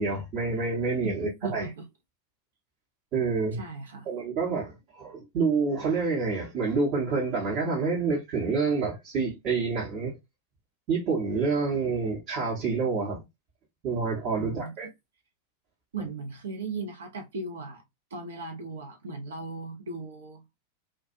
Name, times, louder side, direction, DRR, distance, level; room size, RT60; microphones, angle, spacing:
voice 1, 0.0-1.7 3.1-3.6 4.1-10.2 10.9-13.2 13.8-14.9, right 4 dB, 40° right, 1.0 m, -28 dB
voice 2, 1.0-1.8 3.6-4.1 14.3-14.7 15.9-17.8 18.1-20.4, right 3 dB, 65° right, 0.8 m, -37 dB
2.4 x 2.2 x 2.6 m
figure-of-eight pair, 90°, 0 cm